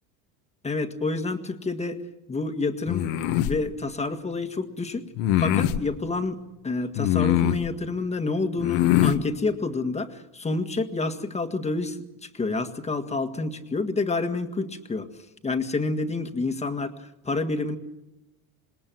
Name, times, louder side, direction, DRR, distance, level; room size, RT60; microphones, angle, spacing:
voice 1, 0.6-2.0 2.3-5.1 5.4-15.1 15.4-17.8, left 3 dB, 15° left, 8 dB, 1.8 m, -29 dB
sound 1, 2.9-3.6 5.2-5.8 6.9-7.7 8.6-9.2, left 11 dB, 70° left, 1.5 m, -22 dB
27.0 x 20.5 x 7.7 m, 0.97 s
cardioid pair, 125°, 41 cm